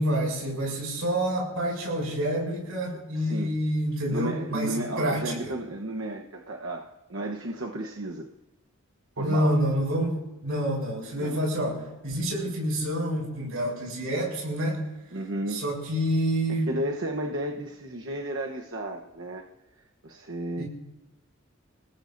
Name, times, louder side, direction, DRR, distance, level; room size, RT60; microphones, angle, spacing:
voice 1, 0.0-5.3 9.2-14.8 15.5-16.7 20.6-20.7, right 1 dB, 90° right, -1 dB, 7.1 m, -28 dB
voice 2, 3.1-3.5 4.1-8.3 9.2-9.5 11.2-11.4 15.1-15.6 16.5-19.5 20.0-20.6, right 1 dB, 65° right, 1 dB, 1.1 m, -33 dB
29.0 x 18.0 x 2.7 m, 1.0 s
head